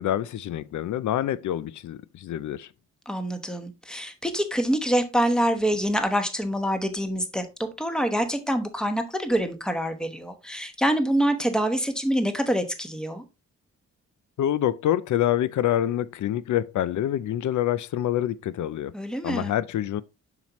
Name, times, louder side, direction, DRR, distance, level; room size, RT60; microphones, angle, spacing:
voice 1, 0.0-2.7 14.4-18.9 19.2-20.0, left 12 dB, 80° left, 0.5 m, -26 dB
voice 2, 3.1-13.2 18.9-19.5, equal, 5° left, 1.0 m, -26 dB
7.3 x 5.9 x 3.0 m
wide cardioid pair, 125°, 29 cm